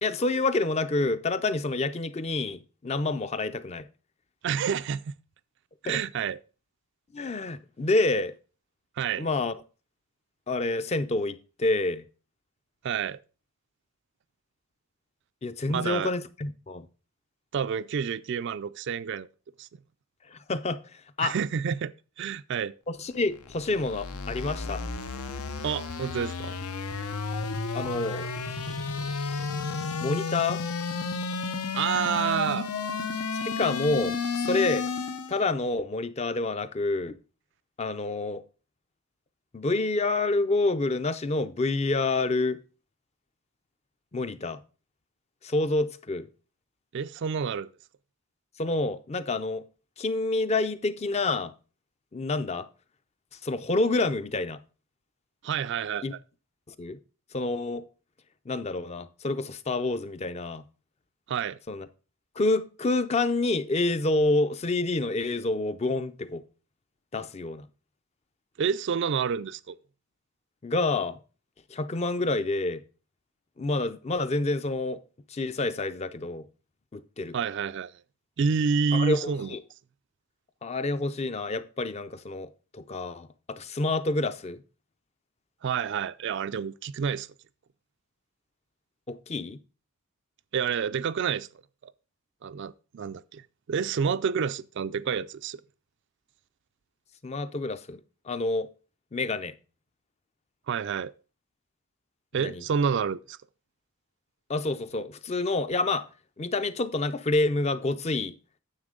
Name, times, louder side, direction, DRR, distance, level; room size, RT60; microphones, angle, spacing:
voice 1, 0.0-3.9 5.9-6.0 7.1-8.3 9.2-9.5 10.5-12.0 15.4-16.9 20.3-21.4 22.9-24.8 27.7-28.3 30.0-30.6 33.3-34.9 35.3-37.2 37.8-38.4 39.5-42.6 44.1-44.6 45.4-46.3 48.6-49.7 50.0-51.5 52.1-52.7 53.4-54.6 56.0-56.1 56.7-57.0 57.3-57.9 58.5-60.6 61.7-61.9 62.4-66.4 67.1-67.7 70.6-71.2 71.7-72.8 73.6-75.0 75.3-76.5 76.9-77.4 78.9-79.6 80.6-84.6 89.1-89.6 97.2-98.7 99.1-99.5 102.4-102.6 104.5-106.1 106.4-108.3, left 2 dB, 30° left, 0.4 m, -28 dB
voice 2, 4.4-5.1 5.8-6.4 9.0-9.3 12.8-13.2 15.7-16.1 17.5-19.3 19.6-19.7 21.2-22.7 25.6-26.6 31.8-32.7 46.9-47.7 55.4-56.0 61.3-61.6 68.6-69.7 77.3-77.9 78.4-79.5 85.6-87.3 90.5-91.5 91.8-91.9 92.4-93.4 93.7-95.6 100.7-101.1 102.3-103.4, right 6 dB, 55° right, 0.3 m, -28 dB
sound 1, 23.2-35.4, left 4 dB, 80° left, 0.8 m, -32 dB
9.6 x 7.3 x 3.7 m
head